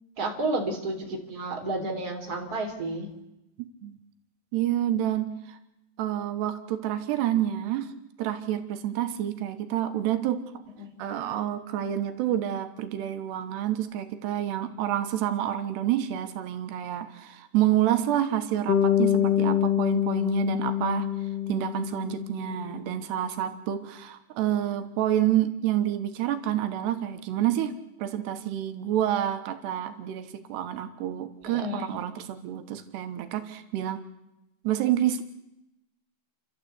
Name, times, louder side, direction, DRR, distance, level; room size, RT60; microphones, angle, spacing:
voice 1, 0.2-3.1 10.8-10.9 31.4-32.0, right 2 dB, 25° right, 1 dB, 3.3 m, -31 dB
voice 2, 3.6-4.0 4.5-5.6 6.0-7.9 8.2-10.5 11.0-21.1 21.5-27.7 28.0-34.0 34.6-35.2, right 11 dB, 85° right, 8 dB, 3.3 m, -28 dB
Bass guitar, 18.7-22.8, left 10 dB, 65° left, 1.5 m, -26 dB
30.0 x 13.0 x 8.2 m, 0.91 s
omnidirectional pair, 4.8 m